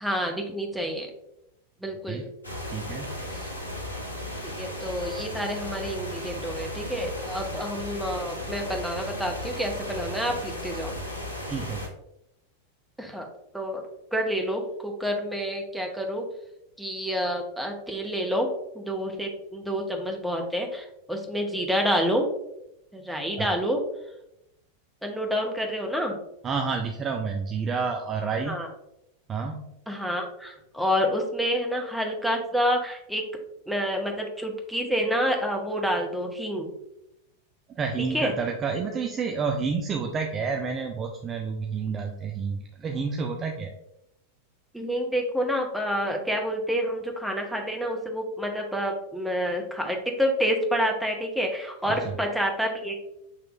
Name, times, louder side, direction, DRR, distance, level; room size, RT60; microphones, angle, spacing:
voice 1, 0.0-1.1 1.8-2.3 3.3-3.5 4.4-10.9 13.0-13.3 13.5-13.8 14.1-16.2 16.8-18.5 18.7-22.3 22.9-23.8 25.0-26.1 28.5-28.7 29.9-33.2 33.7-36.7 38.1-38.3 38.7-38.8 44.7-53.0, equal, ahead, 1 dB, 0.8 m, -28 dB
sound 1, 2.4-11.9, left 1 dB, 85° left, 0.7 m, -35 dB
voice 2, 2.7-3.2 11.5-11.9 23.4-23.5 26.4-28.6 29.3-29.7 37.7-43.7 51.9-52.2, right 5 dB, 25° right, 3 dB, 0.4 m, -29 dB
7.1 x 3.0 x 2.4 m, 0.83 s
figure-of-eight pair, 90°, 0 cm